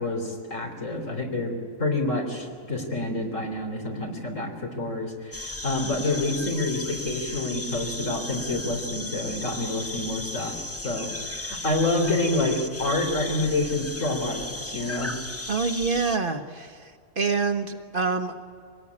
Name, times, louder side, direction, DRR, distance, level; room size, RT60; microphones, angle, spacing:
voice 1, 0.0-1.5 1.8-10.5 10.8-15.2, left 2 dB, 85° left, 2 dB, 3.9 m, -28 dB
sound 1, 5.3-16.2, left 2 dB, 15° left, 0.8 m, -35 dB
voice 2, 15.5-16.9 17.2-18.4, right 4 dB, 45° right, 6 dB, 1.5 m, -26 dB
25.5 x 19.0 x 9.7 m, 2.1 s
omnidirectional pair, 1.3 m